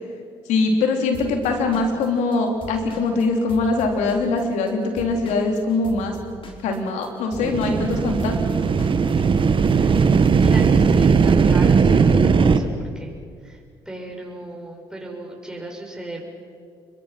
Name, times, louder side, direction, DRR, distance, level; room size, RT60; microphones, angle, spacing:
voice 1, 0.5-6.2 6.6-8.4, left 3 dB, 75° left, 3 dB, 3.4 m, -22 dB
Drum kit / Drum, 1.1-4.7 5.0-10.5, left 2 dB, 45° left, 4.3 m, -40 dB
sound 1, 7.4-12.6, right 5 dB, 45° right, 1.5 m, -17 dB
voice 2, 9.7-13.1 13.4-16.2, right 1 dB, 5° right, -1 dB, 6.8 m, -37 dB
27.5 x 22.5 x 5.9 m, 2.1 s
hypercardioid pair, 55°, 12 cm